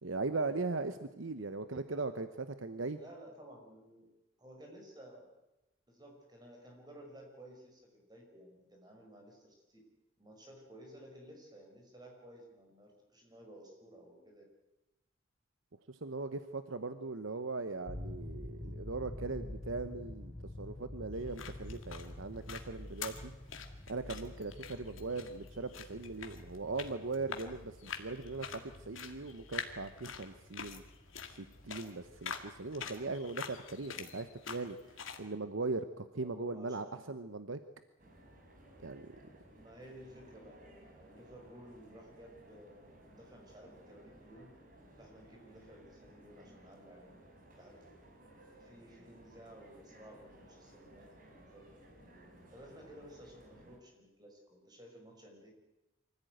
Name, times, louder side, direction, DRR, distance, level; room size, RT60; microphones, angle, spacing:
voice 1, 0.0-3.0 15.9-23.3 23.9-30.8 31.3-37.6 38.8-39.2, right 3 dB, 80° right, 10 dB, 1.0 m, -39 dB
voice 2, 3.0-4.1 4.4-5.2 5.9-9.8 10.2-14.4 36.2-37.1 39.5-44.5 45.0-47.8 48.6-51.1 51.3-51.7 52.5-55.5, equal, 20° right, 1 dB, 5.4 m, -55 dB
sound 1, 17.9-32.7, left 1 dB, 20° left, 0.8 m, -48 dB
sound 2, 21.1-35.3, left 6 dB, 85° left, 2.2 m, -47 dB
sound 3, 38.0-53.8, right 1 dB, 45° right, 4.9 m, -58 dB
24.5 x 15.5 x 9.3 m, 0.99 s
head